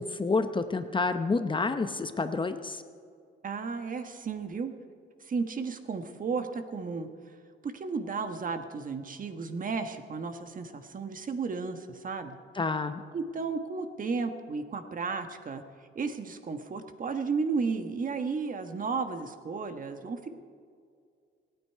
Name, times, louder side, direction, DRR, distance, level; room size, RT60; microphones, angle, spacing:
voice 1, 0.0-2.8 12.5-13.0, left 3 dB, 25° left, 9 dB, 0.8 m, -29 dB
voice 2, 3.4-4.7 5.2-7.1 7.6-12.4 13.1-15.6 15.9-20.3, right 4 dB, 45° right, 7 dB, 1.4 m, -33 dB
27.0 x 9.3 x 4.7 m, 2.2 s
cardioid pair, 90°, 20 cm